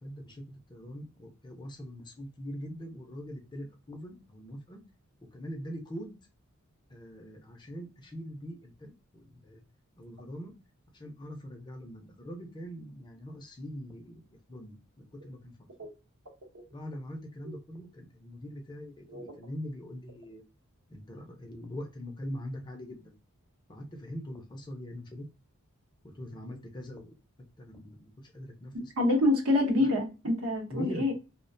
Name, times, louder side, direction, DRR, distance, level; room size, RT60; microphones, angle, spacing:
voice 1, 0.0-4.8 5.3-6.1 6.9-9.6 10.0-10.5 10.9-15.7 16.7-20.4 20.9-23.2 23.7-25.3 26.0-27.1 27.6-28.9 29.8-29.9 30.7-31.1, equal, 20° left, 0.4 m, -42 dB
voice 2, 28.7-31.1, left 2 dB, 75° right, 0.8 m, -27 dB
2.3 x 2.1 x 2.5 m
head